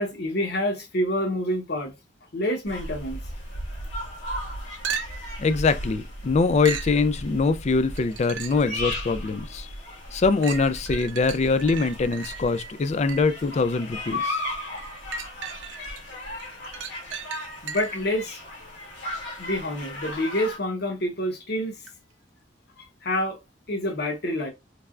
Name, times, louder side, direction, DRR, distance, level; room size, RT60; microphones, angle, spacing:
voice 1, 0.0-1.9 2.3-3.2 17.6-18.4 19.4-21.8 22.8-23.4 23.7-24.5, left 1 dB, 60° left, 1.0 m, -27 dB
sound 1, 2.7-20.6, left 1 dB, 85° left, 1.7 m, -36 dB
sound 2, 4.8-5.4 6.6-7.0 8.0-8.7 9.3-9.4 10.4-13.4 14.8-16.0 16.4-18.1 21.9-22.0, right 6 dB, 90° right, 0.5 m, -36 dB
voice 2, 5.4-9.7 10.1-14.4, left 4 dB, 35° left, 0.3 m, -23 dB
3.3 x 3.3 x 2.4 m
head